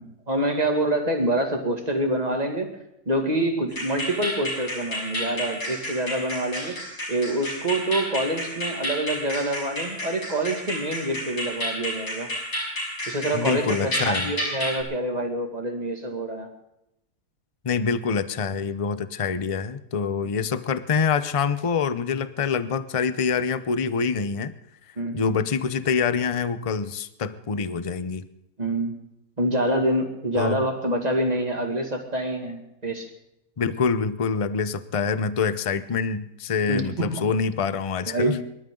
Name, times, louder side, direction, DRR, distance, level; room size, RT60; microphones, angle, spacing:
voice 1, 0.0-2.7 3.1-12.3 13.1-16.5 25.0-25.4 28.6-29.0 29.4-33.1 36.7-37.2 38.1-38.4, right 1 dB, 25° right, 3 dB, 2.3 m, -26 dB
sound 1, 3.7-14.8, equal, 80° left, 7.3 m, -31 dB
voice 2, 13.3-14.4 17.6-24.5 25.1-28.3 30.4-30.6 33.6-38.4, left 5 dB, 40° left, 13 dB, 0.5 m, -25 dB
25.5 x 13.0 x 3.9 m, 0.84 s
omnidirectional pair, 1.7 m